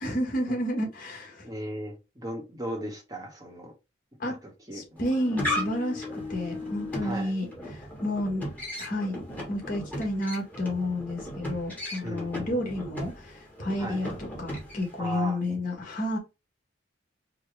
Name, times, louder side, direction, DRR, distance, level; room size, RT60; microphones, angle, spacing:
voice 1, 0.0-1.5 4.2-4.4 4.7-8.4 8.8-16.2, left 1 dB, 45° left, 1.4 m, -31 dB
voice 2, 1.4-3.7 4.3-5.0 7.0-7.3 12.0-12.6 13.8-14.0 15.0-15.4, right 1 dB, 20° right, 1.0 m, -37 dB
sound 1, 5.0-15.0, left 1 dB, 10° left, 1.3 m, -36 dB
4.7 x 2.2 x 3.2 m
head